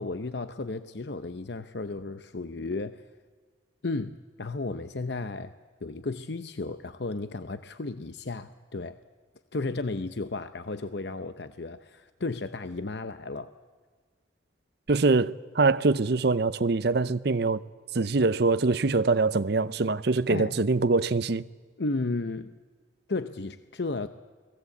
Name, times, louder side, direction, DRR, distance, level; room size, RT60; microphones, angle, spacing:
voice 1, 0.0-3.0 3.8-5.5 5.8-9.0 9.5-13.5 20.3-20.6 21.8-22.5 23.1-24.1, left 3 dB, 60° left, 0.7 m, -34 dB
voice 2, 14.9-17.6 17.9-21.4, right 3 dB, 55° right, 0.7 m, -24 dB
29.0 x 19.5 x 8.4 m
head